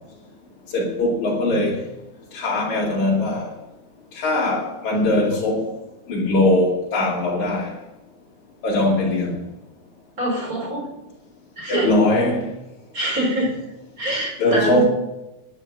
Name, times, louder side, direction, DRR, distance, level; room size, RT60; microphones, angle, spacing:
voice 1, 0.7-1.8 2.3-3.5 4.1-5.7 6.1-7.7 8.6-9.4 11.7-12.5 14.4-14.9, left 1 dB, 70° left, 3.9 m, -20 dB
voice 2, 10.2-10.8 11.6-11.9 12.9-13.5 14.0-14.9, right 1 dB, 25° right, 4.9 m, -24 dB
10.5 x 10.0 x 7.9 m
omnidirectional pair, 3.5 m